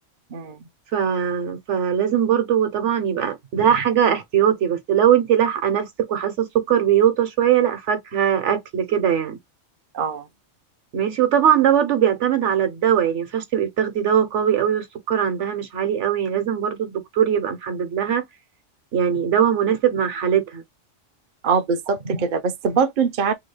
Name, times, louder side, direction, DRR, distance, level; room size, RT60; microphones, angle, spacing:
voice 1, 0.3-0.7 9.9-10.3 21.4-23.3, right 6 dB, 50° right, 0.6 m, -23 dB
voice 2, 0.9-9.4 10.9-18.2 18.9-20.6 22.0-22.2, right 9 dB, 75° right, 1.2 m, -20 dB
3.6 x 2.1 x 3.2 m
omnidirectional pair, 1.3 m